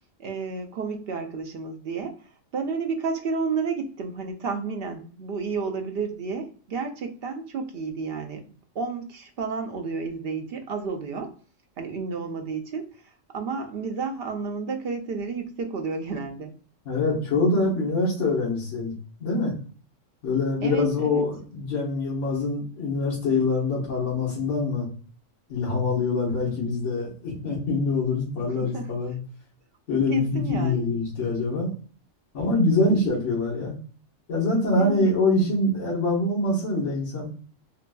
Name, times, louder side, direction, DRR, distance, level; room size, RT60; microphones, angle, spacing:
voice 1, 0.2-8.4 8.7-11.3 11.8-16.5 20.6-21.2 28.6-28.9 30.1-30.9 34.7-35.1, right 4 dB, 65° right, 5 dB, 0.6 m, -31 dB
voice 2, 16.8-18.9 19.2-19.5 20.2-24.9 25.5-29.2 29.9-31.7 32.3-33.8 34.3-37.3, left 2 dB, 65° left, -7 dB, 1.5 m, -24 dB
3.7 x 2.5 x 2.2 m, 0.40 s
omnidirectional pair, 1.4 m